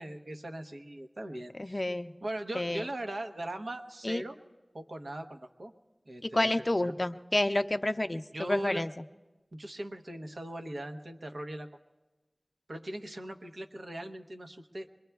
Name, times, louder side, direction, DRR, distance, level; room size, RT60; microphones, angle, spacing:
voice 1, 0.0-1.8 2.2-4.4 4.7-5.7 6.1-6.9 8.3-8.8 9.5-11.7 12.7-14.9, right 1 dB, 85° right, 5 dB, 0.8 m, -39 dB
voice 2, 1.6-2.1 2.5-2.9 4.0-4.2 6.2-8.9, left 1 dB, 40° left, 9 dB, 0.4 m, -29 dB
24.5 x 22.0 x 2.3 m, 1.2 s
wide cardioid pair, 45°, 0 cm